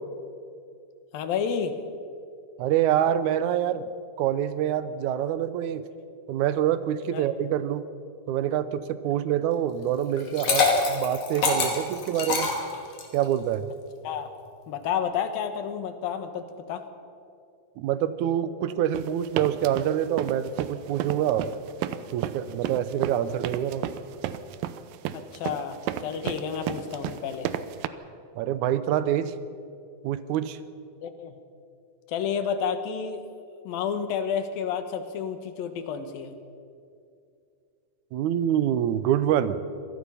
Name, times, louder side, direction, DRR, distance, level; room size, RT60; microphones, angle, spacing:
voice 1, 1.1-1.8 7.1-7.3 14.0-14.3 14.7-16.9 25.1-27.5 31.0-31.4 32.1-33.2 33.6-36.3, left 7 dB, 85° left, 8 dB, 3.1 m, -30 dB
voice 2, 2.6-3.9 4.2-5.8 6.3-7.9 8.3-12.5 13.1-13.7 17.8-21.5 22.1-23.9 28.4-29.3 30.0-30.6 38.1-39.6, right 10 dB, 70° right, 13 dB, 2.0 m, -26 dB
Liquid, 10.2-13.2, left 4 dB, 70° left, 4.2 m, -25 dB
sound 1, 18.9-27.9, right 11 dB, 90° right, 2.6 m, -32 dB
25.5 x 18.5 x 5.7 m, 2.4 s
omnidirectional pair, 4.0 m